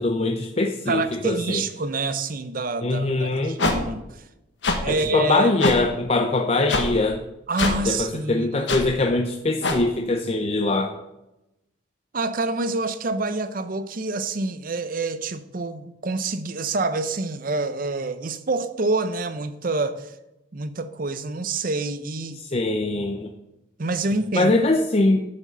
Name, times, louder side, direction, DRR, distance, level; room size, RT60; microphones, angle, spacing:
voice 1, 0.0-1.6 2.8-3.6 4.9-7.2 7.9-10.9 22.4-23.3 24.3-25.2, left 2 dB, 30° left, 0.5 m, -22 dB
voice 2, 0.9-4.2 4.8-5.5 7.5-8.7 12.1-20.1 20.5-22.4 23.8-24.5, right 3 dB, 45° right, 0.6 m, -27 dB
sound 1, 3.6-3.8 4.6-4.8 5.6-5.8 6.7-6.9 7.6-7.8 8.7-8.8 9.6-9.8, left 2 dB, 60° left, 1.2 m, -22 dB
9.5 x 5.0 x 6.6 m
head